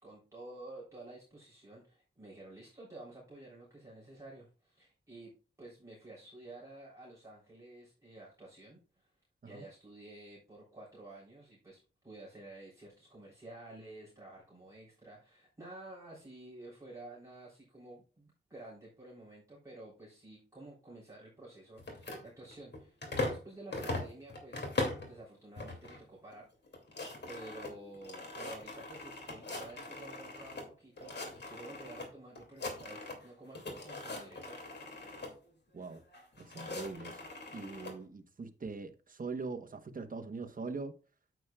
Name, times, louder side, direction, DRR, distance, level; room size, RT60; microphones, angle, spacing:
voice 1, 0.0-5.3 5.6-9.1 9.4-24.7 25.0-26.5 27.3-34.6, right 2 dB, 15° right, 3.5 m, -51 dB
sound 1, 21.8-23.4 23.7-25.1 25.6-26.0 26.3-26.4 26.7-30.7 31.0-32.1 32.4-33.3 33.5-35.3 36.1-37.9, left 2 dB, 60° left, 2.5 m, -40 dB
voice 2, 36.4-37.2 37.5-40.9, right 4 dB, 45° right, 1.1 m, -42 dB
9.2 x 8.1 x 2.3 m
wide cardioid pair, 100°, 20 cm